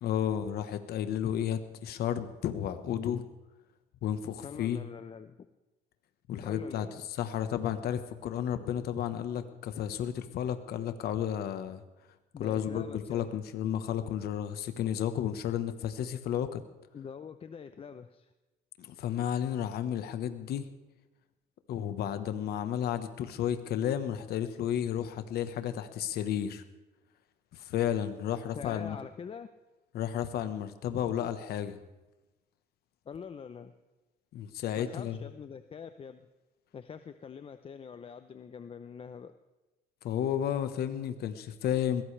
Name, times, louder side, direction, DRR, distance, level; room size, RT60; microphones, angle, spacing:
voice 1, 0.0-3.2 4.0-4.8 6.3-6.9 7.2-11.8 12.4-16.6 18.8-20.6 21.7-26.6 27.5-29.0 29.9-31.8 34.3-35.2 40.0-42.0, left 9 dB, 70° left, 9 dB, 1.3 m, -32 dB
voice 2, 4.4-5.4 6.4-7.0 12.3-13.2 16.9-18.3 28.6-29.5 33.1-33.7 34.8-36.3 36.7-39.3, left 6 dB, 35° left, 10 dB, 0.7 m, -44 dB
21.5 x 16.5 x 3.4 m, 1.1 s
cardioid pair, 110°, 17 cm